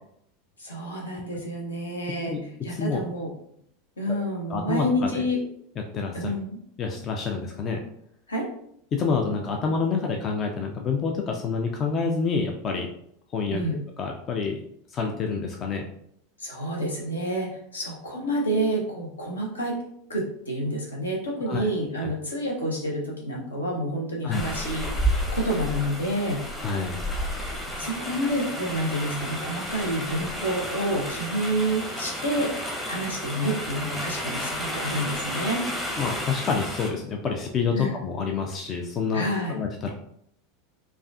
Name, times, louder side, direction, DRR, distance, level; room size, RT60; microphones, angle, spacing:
voice 1, 0.6-3.3 4.0-5.4 6.1-6.6 8.3-8.5 13.5-13.8 16.4-19.8 20.1-26.4 27.4-35.6 37.7-38.0 39.1-39.6, equal, 75° left, -1 dB, 0.9 m, -29 dB
voice 2, 2.7-3.0 4.5-5.2 5.9-6.3 6.8-7.8 8.9-12.9 13.3-13.6 14.0-14.6 14.9-15.8 21.5-21.7 22.0-22.1 24.2-24.4 26.6-27.0 36.0-39.2 39.5-39.9, left 5 dB, 30° left, 2 dB, 0.4 m, -27 dB
sound 1, 24.3-36.9, equal, 10° left, 0.9 m, -31 dB
4.6 x 2.5 x 2.3 m, 0.70 s
figure-of-eight pair, 85°, 0 cm